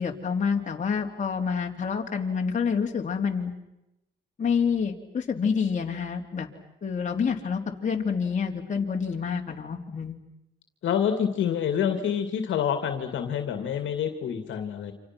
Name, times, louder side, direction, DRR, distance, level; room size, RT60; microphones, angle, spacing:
voice 1, 0.0-3.5 4.4-6.5 6.8-10.2, left 6 dB, 40° left, 1 dB, 3.3 m, -28 dB
voice 2, 10.8-14.9, left 8 dB, 75° left, 7 dB, 2.4 m, -27 dB
29.0 x 26.5 x 6.1 m, 0.89 s
cardioid pair, 90°, 20 cm